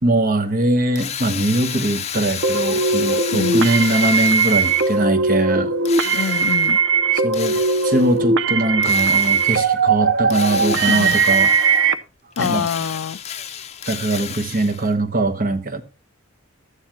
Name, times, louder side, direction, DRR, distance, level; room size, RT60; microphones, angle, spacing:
voice 1, 0.0-5.7 6.0-6.1 7.2-7.6 7.8-11.6 12.4-12.7 13.9-15.8, right 1 dB, 40° right, 1.2 m, -21 dB
Drill, 1.0-5.1 5.8-6.8 7.3-8.2 8.8-9.7 10.3-11.9 12.3-14.9, left 8 dB, 30° left, 0.7 m, -31 dB
sound 1, 2.4-11.9, right 4 dB, 60° right, 0.7 m, -19 dB
voice 2, 3.3-3.7 6.1-6.8 10.9-11.2 12.4-13.2, left 6 dB, 65° left, 0.4 m, -25 dB
13.0 x 9.6 x 3.0 m
head